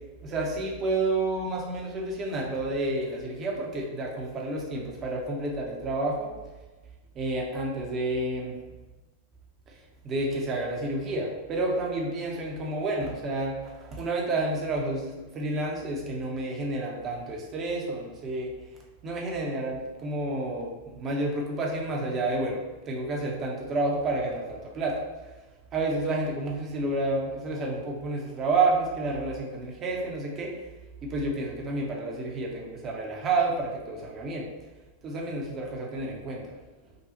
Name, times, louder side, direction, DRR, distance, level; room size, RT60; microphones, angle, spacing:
voice 1, 0.2-6.3 7.1-8.5 9.7-9.8 10.0-18.5 19.0-22.6 22.8-25.0 25.7-30.5 31.0-34.5 35.0-36.6, right 2 dB, 30° right, -1 dB, 0.8 m, -30 dB
5.1 x 2.4 x 2.9 m, 1.2 s
figure-of-eight pair, 90°, 0 cm